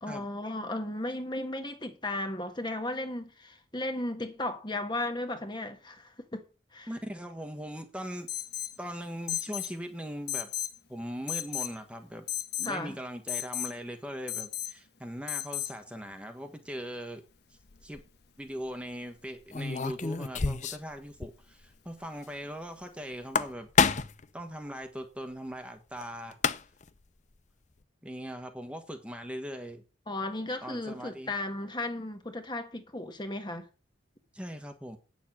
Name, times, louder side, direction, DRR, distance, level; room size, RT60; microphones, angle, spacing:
voice 1, 0.0-6.4 6.7-6.9 12.6-13.0 30.1-33.7, left 2 dB, 25° left, 1.4 m, -35 dB
voice 2, 6.9-8.3 8.8-10.5 10.9-12.3 12.6-17.2 17.5-18.0 18.4-23.7 24.3-26.4 28.0-29.8 30.6-31.3 34.3-35.0, equal, 5° right, 1.3 m, -40 dB
Alarm, 8.3-8.8 9.3-9.7 10.3-10.8 11.3-11.7 12.3-12.7 13.3-13.7 14.3-14.7 15.3-15.7, left 11 dB, 55° left, 1.3 m, -34 dB
sound 1, 17.7-18.0 19.5-20.9 21.2-21.3 21.6-21.7 23.1-24.2 26.0-26.1 26.3-26.9, left 5 dB, 40° left, 0.6 m, -28 dB
9.2 x 7.0 x 7.4 m
head